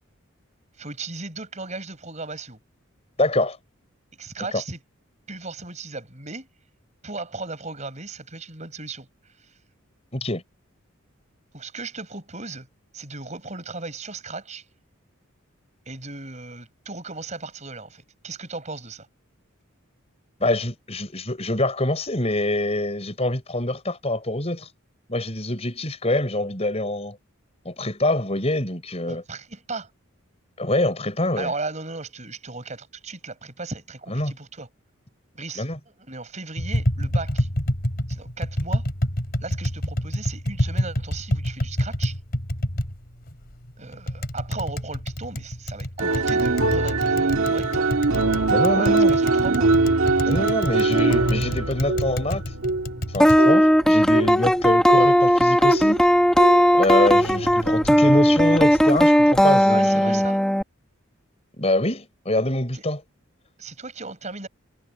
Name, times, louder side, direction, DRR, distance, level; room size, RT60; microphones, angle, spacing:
voice 1, 0.8-2.6 4.2-4.8 5.3-6.5 7.0-9.1 9.4-9.5 11.5-12.7 12.9-14.6 15.9-19.1 29.1-29.9 31.4-34.7 35.3-37.5 38.1-38.9 39.4-42.2 43.8-48.0 48.7-49.7 59.7-60.4 62.7-62.8 63.6-64.5, right 3 dB, 35° right, 6.2 m, -36 dB
voice 2, 3.2-3.6 10.1-10.4 20.4-24.7 25.1-27.2 27.7-29.2 30.6-31.5 34.1-34.3 35.6-35.8 48.5-49.1 50.2-52.4 53.1-56.0 56.7-60.2 61.6-63.0, left 1 dB, 30° left, 5.6 m, -25 dB
Tap, 36.6-53.4, equal, 45° left, 4.6 m, -28 dB
sound 1, 46.0-56.1 56.4-56.8 57.1-58.9, right 3 dB, 85° right, 1.8 m, -23 dB
sound 2, 53.2-60.6, equal, 5° left, 1.8 m, -17 dB
head